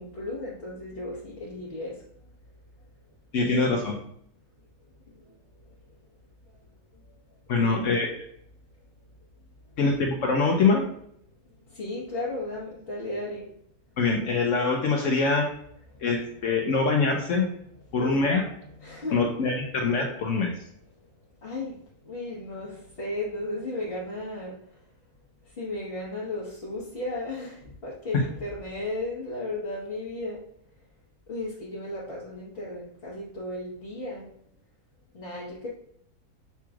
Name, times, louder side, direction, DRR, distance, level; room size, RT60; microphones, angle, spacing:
voice 1, 0.0-2.0 5.1-5.4 7.5-8.0 11.4-13.5 15.9-16.1 17.9-18.2 18.8-19.3 21.4-24.8 25.4-30.5 31.3-34.3 35.1-35.7, left 2 dB, 40° left, -6 dB, 1.1 m, -35 dB
voice 2, 3.3-4.0 7.5-8.1 9.8-10.8 14.0-15.5 16.0-17.5 17.9-18.4 19.1-20.5, left 4 dB, 65° left, 1 dB, 0.8 m, -24 dB
6.8 x 3.0 x 2.3 m, 0.70 s
omnidirectional pair, 1.7 m